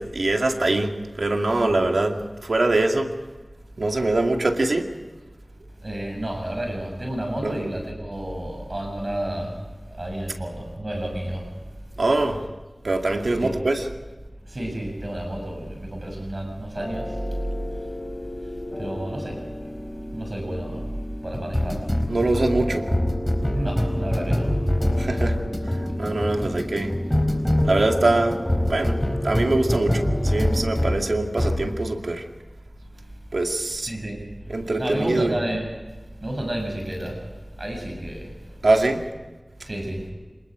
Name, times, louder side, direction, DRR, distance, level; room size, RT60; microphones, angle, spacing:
voice 1, 0.0-3.1 3.8-4.9 7.4-7.5 12.0-12.4 12.8-13.9 22.1-22.9 25.0-25.4 25.7-26.9 27.6-32.2 33.3-33.9 34.5-35.4 38.6-39.1, right 2 dB, 85° right, 3 dB, 2.3 m, -23 dB
voice 2, 5.8-11.5 13.4-13.6 14.5-17.4 18.4-19.7 20.1-20.9 21.2-21.9 23.5-24.6 33.9-34.3 34.8-35.7 36.2-37.2 37.6-38.3 39.6-40.1, right 1 dB, 50° right, 2 dB, 7.2 m, -31 dB
sound 1, 16.8-31.0 31.4-31.7, left 1 dB, 10° left, 4.2 m, -26 dB
27.5 x 20.5 x 5.1 m, 1.3 s
wide cardioid pair, 45°, 0 cm